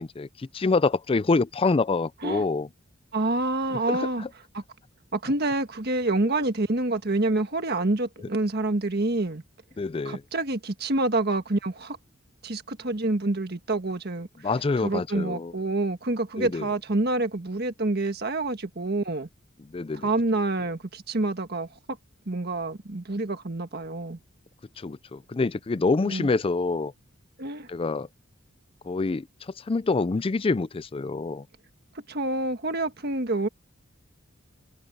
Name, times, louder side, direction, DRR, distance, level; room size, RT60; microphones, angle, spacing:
voice 1, 0.0-2.7 3.7-4.3 9.8-10.2 14.4-15.5 16.4-16.6 19.7-20.1 24.8-26.9 27.7-28.1 28.8-29.3 29.7-31.4, left 3 dB, 25° left, 0.4 m, -26 dB
voice 2, 3.1-4.2 4.5-4.6 5.1-9.4 10.0-12.0 12.4-14.3 14.8-19.3 20.0-21.7 22.3-24.2 26.0-26.3 27.4-27.7 32.1-33.5, right 2 dB, 50° right, 1.6 m, -27 dB
head